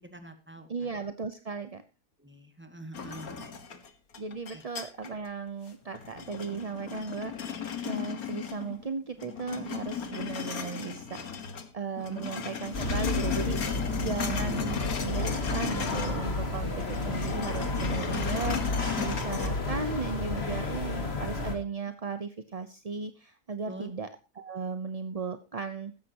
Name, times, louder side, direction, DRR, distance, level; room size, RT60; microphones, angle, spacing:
voice 1, 0.0-0.9 2.2-3.5 4.5-4.6 12.0-12.3 14.2-14.4 23.7-23.9, equal, 5° right, 7 dB, 2.0 m, -44 dB
voice 2, 0.7-1.8 4.2-7.3 7.8-11.5 11.7-13.6 14.0-16.7 17.1-24.1 24.4-25.9, right 5 dB, 35° right, 10 dB, 0.6 m, -36 dB
sound 1, 2.9-5.3 5.7-8.9 9.2-11.7 12.0-16.2 16.5-19.5, left 7 dB, 70° left, 2.0 m, -36 dB
sound 2, 12.7-21.5, left 2 dB, 40° left, 2.4 m, -31 dB
16.0 x 13.5 x 2.9 m, 0.28 s
omnidirectional pair, 1.6 m